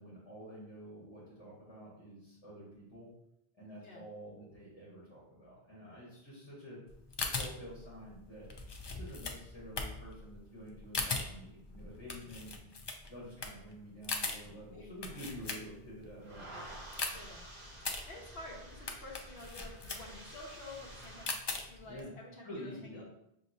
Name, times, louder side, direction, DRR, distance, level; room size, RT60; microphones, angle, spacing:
voice 1, 0.0-3.1 3.6-6.8 7.2-8.5 8.9-12.6 13.1-16.5 21.8-22.1 22.4-23.0, equal, 25° left, -6 dB, 1.3 m, -49 dB
sound 1, 6.9-16.0 16.4-22.0, left 3 dB, 45° left, 0.3 m, -40 dB
voice 2, 14.7-15.2 17.1-17.5 18.0-23.0, left 2 dB, 70° left, -3 dB, 1.3 m, -50 dB
sound 2, 15.2-21.3, right 1 dB, 60° right, 1.4 m, -50 dB
6.3 x 2.7 x 2.7 m, 0.81 s
omnidirectional pair, 1.0 m